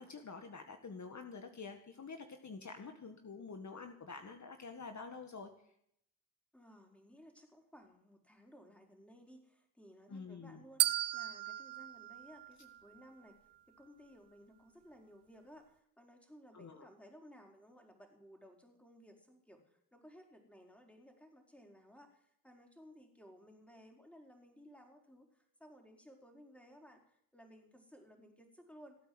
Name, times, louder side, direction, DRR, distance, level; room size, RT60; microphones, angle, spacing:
voice 1, 0.0-5.5 10.1-10.6 16.5-16.9, left 4 dB, 45° left, 6 dB, 1.9 m, -48 dB
voice 2, 6.5-13.4 13.7-29.0, equal, 5° left, 2 dB, 4.6 m, -59 dB
sound 1, 10.8-13.0, right 15 dB, 75° right, 0.8 m, -36 dB
17.0 x 8.8 x 7.8 m, 0.72 s
hypercardioid pair, 40°, 40 cm